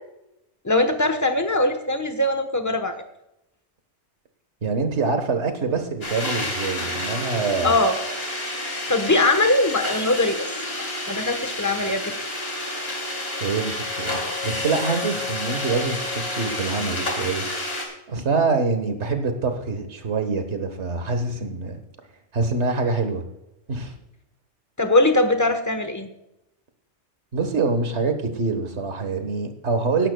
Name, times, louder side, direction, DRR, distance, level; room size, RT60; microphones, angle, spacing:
voice 1, 0.6-3.0 7.6-8.0 8.9-10.5 10.8-12.1 24.8-26.1, left 2 dB, 15° left, 7 dB, 1.1 m, -21 dB
voice 2, 4.6-7.7 13.4-17.5 18.1-21.8 22.3-23.2 23.7-23.9 27.3-30.1, right 4 dB, 70° right, 7 dB, 1.7 m, -25 dB
sound 1, 6.0-17.9, left 1 dB, 55° left, 2.8 m, -29 dB
16.5 x 11.5 x 2.3 m, 0.84 s
omnidirectional pair, 1.2 m